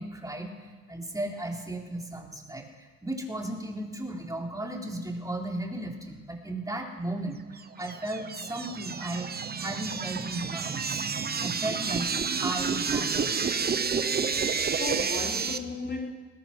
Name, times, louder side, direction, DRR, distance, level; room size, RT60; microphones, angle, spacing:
voice 1, 0.0-9.3 9.6-11.0 11.4-12.1 12.4-13.3 14.3-14.4, right 1 dB, 10° right, 4.0 m, -35 dB
sound 1, 7.6-15.6, right 5 dB, 30° right, 1.1 m, -30 dB
voice 2, 14.3-16.1, left 3 dB, 35° left, 3.2 m, -36 dB
21.0 x 20.0 x 6.2 m
cardioid pair, 90°, 30 cm